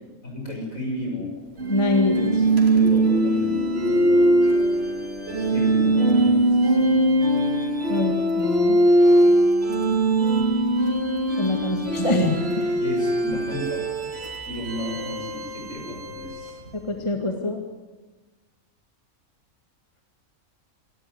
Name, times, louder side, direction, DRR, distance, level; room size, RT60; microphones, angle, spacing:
voice 1, 0.2-1.4 2.7-4.3 5.1-7.0 12.8-16.6, left 1 dB, 65° left, 0 dB, 7.3 m, -33 dB
sound 1, 1.6-16.7, right 1 dB, 45° right, 3.4 m, -21 dB
voice 2, 1.7-2.5 7.9-8.8 11.4-12.7 16.9-17.6, left 2 dB, 20° left, 3 dB, 2.0 m, -25 dB
27.0 x 13.0 x 9.7 m, 1.2 s
omnidirectional pair, 1.5 m